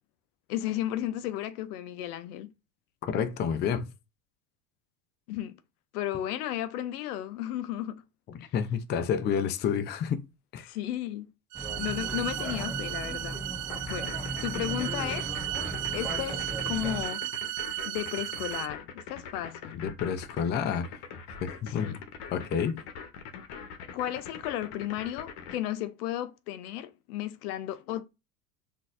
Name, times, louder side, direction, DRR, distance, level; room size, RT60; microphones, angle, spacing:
voice 1, 0.5-2.5 5.3-5.6 5.9-8.0 8.4-8.5 10.7-11.3 11.8-13.4 13.9-14.2 14.4-15.4 15.9-17.2 17.8-19.8 21.6-22.0 23.9-28.0, left 12 dB, 75° left, 0.5 m, -34 dB
voice 2, 3.0-3.9 8.3-10.2 10.5-10.7 19.7-21.0 21.4-22.0 22.3-22.8, left 7 dB, 25° left, 0.4 m, -29 dB
Train Ambience, 11.5-17.0, right 1 dB, ahead, 0.8 m, -37 dB
sound 1, 11.5-18.7, right 15 dB, 75° right, 0.6 m, -35 dB
sound 2, 13.7-25.6, left 6 dB, 60° left, 0.9 m, -42 dB
3.9 x 2.6 x 2.5 m
hypercardioid pair, 85°, 46 cm